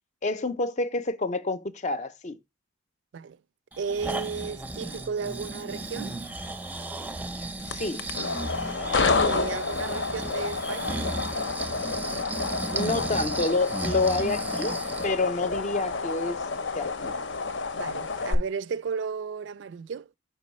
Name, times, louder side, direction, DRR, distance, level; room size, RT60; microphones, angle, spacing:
voice 1, 0.2-2.4 7.7-8.1 12.7-16.5 16.7-17.2, left 3 dB, 40° left, 0.5 m, -28 dB
Breathing, 3.7-15.1 15.6-15.7, right 2 dB, 10° right, 0.5 m, -35 dB
voice 2, 3.8-6.2 9.2-11.1 17.7-20.1, right 5 dB, 70° right, 0.3 m, -34 dB
sound 1, 7.6-18.3, left 4 dB, 75° left, 0.7 m, -29 dB
5.3 x 4.5 x 4.1 m
head